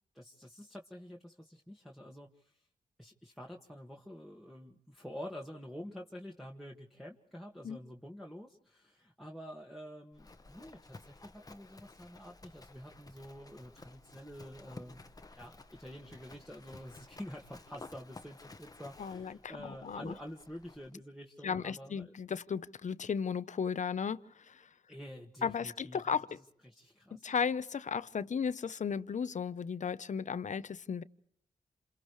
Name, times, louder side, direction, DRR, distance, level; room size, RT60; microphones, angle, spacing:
voice 1, 0.1-2.6 3.0-15.0 15.3-22.1 24.9-26.2 26.6-27.3, equal, ahead, 1.9 m, -48 dB
Livestock farm animals working animals, 10.1-20.9, left 3 dB, 25° left, 1.2 m, -54 dB
voice 2, 19.0-20.1 21.4-24.7 25.4-26.3 27.2-31.0, left 6 dB, 55° left, 0.8 m, -35 dB
28.5 x 28.0 x 3.3 m
cardioid pair, 70°, 15 cm